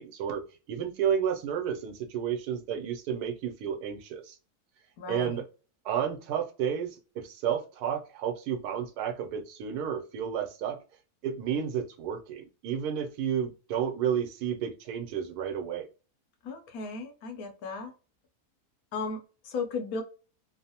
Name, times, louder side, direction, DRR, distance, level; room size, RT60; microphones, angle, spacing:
voice 1, 0.0-4.4 5.1-5.4 5.8-10.8 11.2-15.9, right 8 dB, 80° right, 1.1 m, -31 dB
voice 2, 5.0-5.4 16.4-17.9 18.9-20.0, left 4 dB, 70° left, 1.1 m, -35 dB
3.0 x 2.0 x 2.7 m
omnidirectional pair, 1.6 m